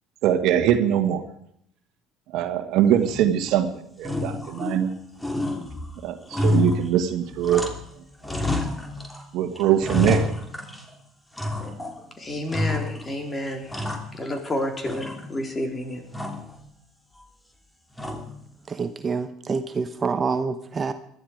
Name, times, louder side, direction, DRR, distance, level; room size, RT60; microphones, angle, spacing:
voice 1, 0.2-1.2 2.3-4.9 6.0-7.6 9.3-10.3, right 10 dB, 65° right, 8 dB, 1.6 m, -22 dB
sound 1, 3.0-3.6 4.0-4.9 5.2-7.9 8.2-9.2 9.5-10.9 11.4-12.0 12.5-13.1 13.5-14.5 14.8-15.6 16.1-16.5 18.0-18.5, left 2 dB, 10° left, 3.0 m, -29 dB
voice 2, 12.2-13.7 14.1-16.0, left 1 dB, 30° left, 4 dB, 4.0 m, -30 dB
voice 3, 18.7-20.9, right 5 dB, 35° right, 10 dB, 1.0 m, -27 dB
20.5 x 12.5 x 4.9 m, 0.70 s
hypercardioid pair, 65°, 0 cm